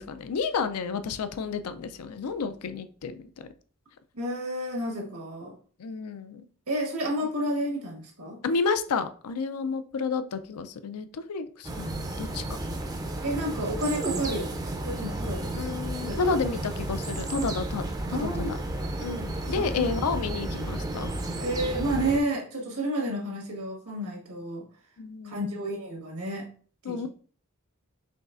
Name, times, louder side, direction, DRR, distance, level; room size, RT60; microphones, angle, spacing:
voice 1, 0.0-3.1 5.8-6.4 8.4-12.4 15.6-17.9 18.2-18.6 19.0-21.1 25.0-25.4 26.9-27.1, left 5 dB, 80° left, 11 dB, 0.4 m, -31 dB
voice 2, 4.1-5.5 6.7-8.4 13.2-15.7 16.0-16.4 17.4-17.5 18.1-18.5 19.5-19.9 21.4-24.7 25.2-26.5 26.9-27.1, right 1 dB, 80° right, -1 dB, 1.6 m, -31 dB
sound 1, 11.6-22.2, right 1 dB, 15° right, 0.5 m, -32 dB
5.2 x 3.1 x 2.5 m, 0.43 s
head